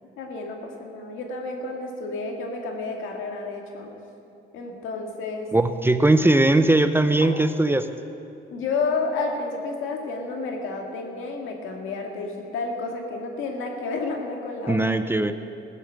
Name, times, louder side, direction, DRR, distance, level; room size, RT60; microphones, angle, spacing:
voice 1, 0.2-3.9 4.5-5.5 7.2-7.3 8.5-14.8, left 3 dB, 85° left, 2 dB, 2.0 m, -30 dB
voice 2, 5.5-7.9 14.7-15.3, right 2 dB, 10° right, 9 dB, 0.6 m, -19 dB
16.0 x 8.2 x 6.7 m, 2.6 s
cardioid pair, 90°, 20 cm